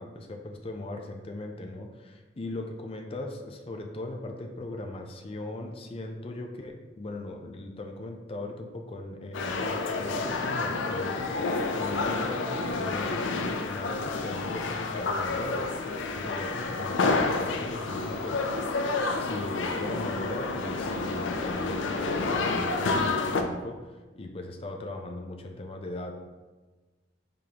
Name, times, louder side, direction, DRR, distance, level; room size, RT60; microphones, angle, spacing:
voice 1, 0.0-18.4 19.2-26.1, left 2 dB, 30° left, 3 dB, 0.5 m, -38 dB
sound 1, 9.3-23.4, left 3 dB, 85° left, 0.5 m, -29 dB
5.0 x 3.7 x 2.9 m, 1.2 s
head